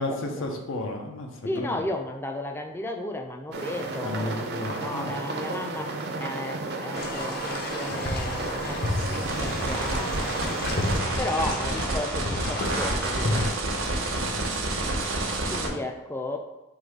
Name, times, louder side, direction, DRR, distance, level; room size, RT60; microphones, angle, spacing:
voice 1, 0.0-1.8 4.0-5.1 14.2-14.6, left 2 dB, 80° left, 2 dB, 0.7 m, -33 dB
voice 2, 1.4-4.3 4.8-5.9 6.2-10.2 11.2-13.4 15.5-16.4, left 1 dB, 10° left, 3 dB, 0.3 m, -34 dB
sound 1, 3.5-11.0, right 3 dB, 55° right, 0.5 m, -33 dB
sound 2, 6.9-13.5, left 1 dB, 50° left, 0.7 m, -31 dB
sound 3, 8.9-15.7, right 2 dB, 90° right, 0.8 m, -29 dB
3.9 x 2.7 x 4.6 m, 1.0 s
head